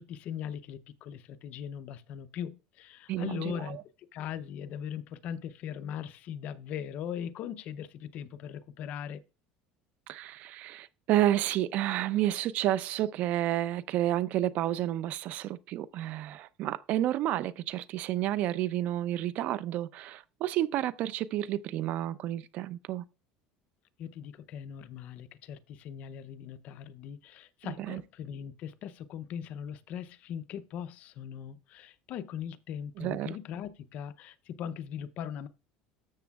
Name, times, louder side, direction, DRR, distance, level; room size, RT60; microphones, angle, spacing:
voice 1, 0.0-3.8 4.1-9.2 24.0-35.5, left 9 dB, 50° left, 0.6 m, -40 dB
voice 2, 3.1-3.8 10.1-23.0 27.8-28.0 33.0-33.4, right 13 dB, 50° right, 0.5 m, -30 dB
13.0 x 7.1 x 2.3 m
cardioid pair, 135°, 3 cm